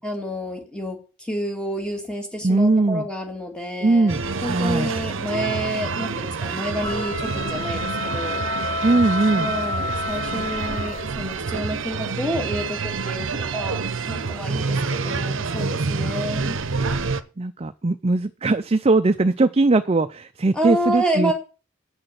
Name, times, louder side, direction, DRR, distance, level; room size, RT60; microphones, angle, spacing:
voice 1, 0.0-8.4 9.3-16.6 20.5-21.3, right 1 dB, 5° left, 2 dB, 2.2 m, -29 dB
voice 2, 2.4-3.1 3.8-4.9 8.8-9.5 17.4-21.3, right 2 dB, 30° right, 11 dB, 0.5 m, -20 dB
sound 1, 4.1-17.2, right 4 dB, 60° right, 0.8 m, -27 dB
sound 2, 6.8-11.3, left 3 dB, 30° left, 4.6 m, -30 dB
8.8 x 6.6 x 7.5 m, 0.34 s
head